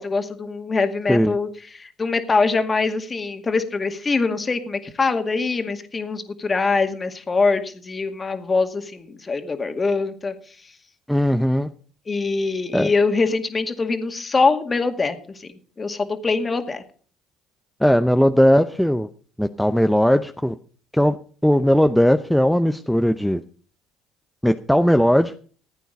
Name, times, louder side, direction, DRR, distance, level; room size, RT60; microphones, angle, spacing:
voice 1, 0.0-1.5 1.7-10.3 12.1-15.5 15.8-16.8, left 4 dB, 30° left, 7 dB, 2.1 m, -23 dB
voice 2, 11.1-11.7 12.7-12.9 17.8-19.1 19.4-20.5 20.9-21.2 21.4-23.4 24.4-25.4, equal, ahead, 8 dB, 0.7 m, -18 dB
15.0 x 9.2 x 5.2 m, 0.43 s
supercardioid pair, 75°, 0 cm